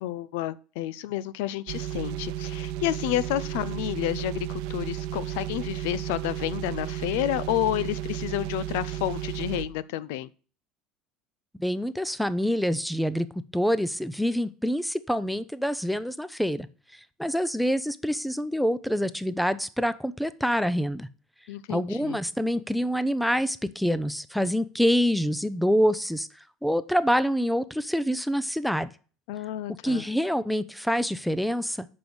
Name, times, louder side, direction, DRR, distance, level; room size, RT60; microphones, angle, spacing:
voice 1, 0.0-10.3 21.5-22.2 29.3-30.0, left 14 dB, 80° left, 0.4 m, -30 dB
sound 1, 1.7-9.7, right 12 dB, 75° right, 0.7 m, -33 dB
voice 2, 11.6-13.3 13.5-16.7 17.2-21.1 21.7-26.3 26.6-28.9 29.8-31.9, equal, ahead, 0.5 m, -26 dB
6.8 x 5.4 x 6.1 m
supercardioid pair, 130°, 0 cm